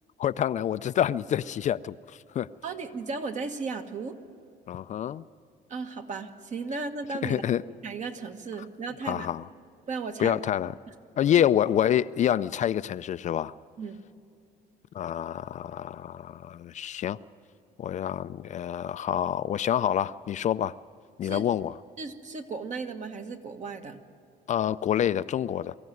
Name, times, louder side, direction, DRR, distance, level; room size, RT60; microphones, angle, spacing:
voice 1, 0.2-2.5 4.7-5.2 7.2-7.6 9.1-9.5 10.2-10.7 11.2-13.5 14.9-17.2 17.8-20.8 21.2-21.7 24.5-25.8, left 10 dB, 45° left, 14 dB, 0.4 m, -27 dB
voice 2, 2.6-4.2 5.7-7.4 7.8-9.3 9.9-10.4 13.8-14.0 21.2-21.5 22.0-24.0, right 4 dB, 45° right, 6 dB, 1.6 m, -35 dB
24.0 x 15.0 x 9.4 m, 2.4 s
cardioid pair, 110°, 17 cm